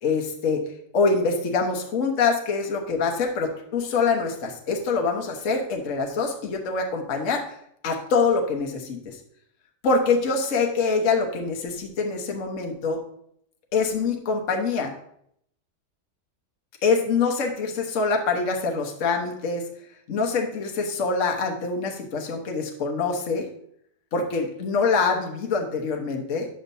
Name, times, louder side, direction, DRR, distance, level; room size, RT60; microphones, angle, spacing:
voice 1, 0.0-0.6 0.9-7.5 7.8-9.2 9.8-13.0 13.7-14.9 16.8-19.7 20.1-23.5 24.1-26.5, left 4 dB, 50° left, 2 dB, 1.3 m, -25 dB
10.0 x 7.2 x 2.7 m, 0.70 s
omnidirectional pair, 1.9 m